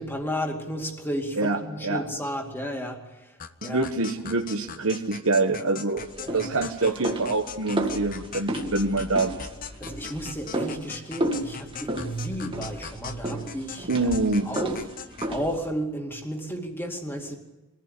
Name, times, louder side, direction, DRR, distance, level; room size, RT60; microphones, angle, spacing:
voice 1, 0.0-3.3 3.6-3.9 6.2-6.5 9.8-14.1 14.5-14.8 15.3-17.4, equal, 10° left, 3 dB, 2.4 m, -33 dB
voice 2, 1.4-2.0 3.6-6.1 6.3-9.4 13.9-14.5, right 3 dB, 70° right, 2 dB, 1.3 m, -25 dB
sound 1, 3.4-15.4, left 6 dB, 40° left, 0.8 m, -41 dB
sound 2, 6.0-15.7, right 1 dB, 25° right, 1.9 m, -33 dB
23.5 x 15.0 x 8.4 m, 1.2 s
head